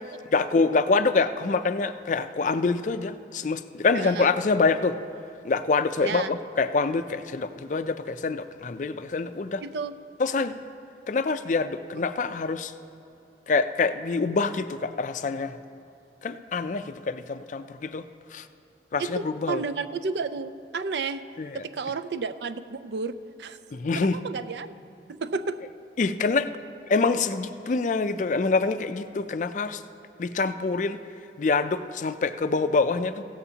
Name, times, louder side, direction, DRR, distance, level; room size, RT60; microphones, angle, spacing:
voice 1, 0.3-5.0 5.4-9.6 10.2-10.5 11.1-12.7 13.5-15.6 16.2-18.1 18.3-18.4 18.9-19.6 21.4-21.6 23.7-24.2 26.0-26.5 26.9-29.8 30.2-31.0 31.4-33.2, left 4 dB, 45° left, 11 dB, 0.4 m, -25 dB
voice 2, 3.9-4.3 6.0-6.3 9.6-10.0 11.9-12.0 19.0-21.2 21.5-23.6 23.9-24.7 25.1-25.6, right 4 dB, 75° right, 11 dB, 0.4 m, -32 dB
16.0 x 14.0 x 2.8 m, 2.9 s
head